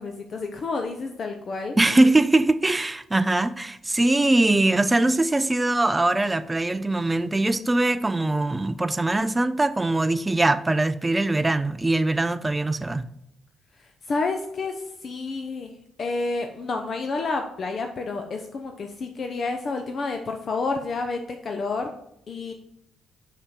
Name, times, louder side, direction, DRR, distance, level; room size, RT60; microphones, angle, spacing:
voice 1, 0.0-1.8 14.1-21.9 22.3-22.5, left 3 dB, 50° left, 0.7 m, -29 dB
voice 2, 1.8-13.1, right 2 dB, 15° right, 0.4 m, -22 dB
5.6 x 5.5 x 4.9 m
cardioid pair, 90°, 0 cm